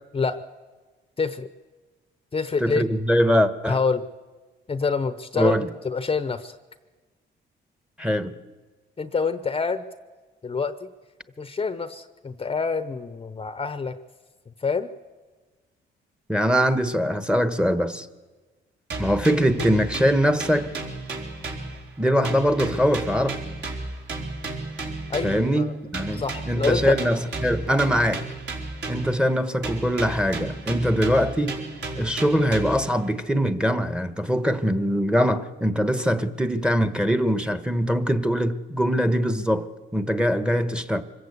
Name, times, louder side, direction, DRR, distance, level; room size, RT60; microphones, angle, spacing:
voice 1, 1.2-1.5 2.3-2.9 3.7-4.0 4.7-5.5 5.8-6.5 9.0-9.9 10.4-10.9 11.4-14.0 14.6-14.9 25.1-25.7 26.1-27.0, left 5 dB, 30° left, 0.9 m, -26 dB
voice 2, 2.6-3.8 5.4-5.7 8.0-8.3 16.3-18.1 19.0-20.8 22.0-23.4 25.2-28.3 28.9-31.6 32.0-41.0, equal, 5° right, 1.2 m, -22 dB
sound 1, 18.9-22.0 22.2-25.5 25.9-29.3 29.6-32.9, right 3 dB, 60° right, 4.5 m, -33 dB
25.0 x 15.5 x 8.3 m
cardioid pair, 90°, 20 cm